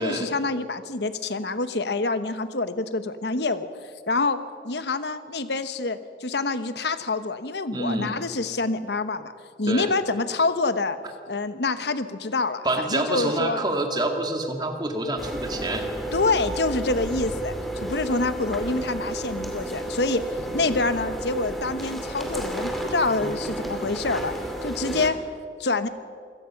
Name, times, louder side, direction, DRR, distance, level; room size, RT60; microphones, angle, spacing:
voice 1, 0.0-3.7 4.1-9.3 9.6-11.0 11.3-13.6 16.1-20.2 20.5-24.3 24.6-25.2 25.6-25.9, left 3 dB, 65° left, 12 dB, 1.1 m, -26 dB
voice 2, 7.7-8.2 9.7-10.0 12.6-15.9, right 1 dB, 25° right, 4 dB, 2.1 m, -27 dB
sound 1, 15.2-25.1, right 1 dB, ahead, 2.5 m, -32 dB
26.5 x 17.5 x 5.9 m, 2.2 s
head